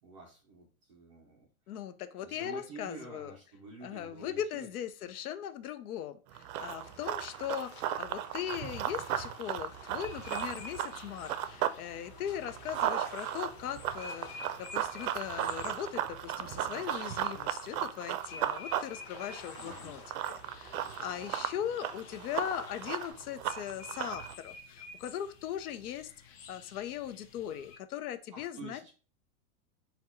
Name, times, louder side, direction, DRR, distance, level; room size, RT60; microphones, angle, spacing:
voice 1, 0.0-1.5 2.2-4.7 19.6-20.0 28.3-28.9, right 3 dB, 25° right, -1 dB, 0.3 m, -49 dB
voice 2, 1.7-3.3 3.8-20.0 20.3-28.9, left 10 dB, 80° left, 11 dB, 0.7 m, -39 dB
Run, 6.3-11.8 12.1-24.3, right 11 dB, 75° right, 0.5 m, -36 dB
sound 1, 6.6-23.1, left 4 dB, 30° left, 1.2 m, -53 dB
sound 2, 10.0-27.8, left 5 dB, 45° left, 0.6 m, -52 dB
4.1 x 2.2 x 4.1 m, 0.37 s
supercardioid pair, 160°, 44 cm